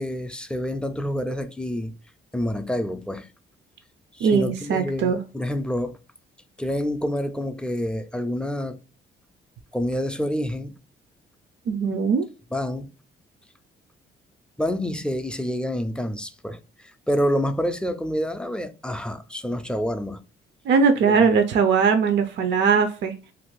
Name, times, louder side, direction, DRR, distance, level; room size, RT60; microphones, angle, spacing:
voice 1, 0.0-1.9 2.3-3.3 4.1-6.0 6.6-8.8 9.7-10.7 12.5-12.9 14.6-20.2 21.0-21.3, equal, 5° left, 0.3 m, -28 dB
voice 2, 4.2-5.2 11.7-12.3 20.7-23.1, right 5 dB, 65° right, 0.4 m, -20 dB
2.9 x 2.5 x 3.1 m
cardioid pair, 90°, 20 cm